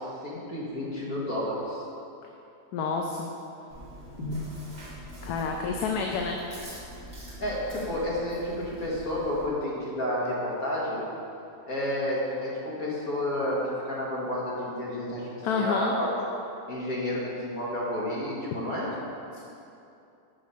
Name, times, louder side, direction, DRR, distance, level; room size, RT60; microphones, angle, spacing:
voice 1, 0.0-1.8 4.2-4.4 7.4-11.0 11.7-15.3 15.6-16.1 16.7-18.9, left 1 dB, 65° left, -6 dB, 2.2 m, -30 dB
voice 2, 2.7-3.3 5.2-6.4 15.4-15.9 19.3-19.4, left 5 dB, 80° left, 2 dB, 1.1 m, -28 dB
Chewing mastication, 3.7-9.5, right 1 dB, 30° right, 1.7 m, -44 dB
6.4 x 6.1 x 5.6 m, 2.7 s
omnidirectional pair, 1.7 m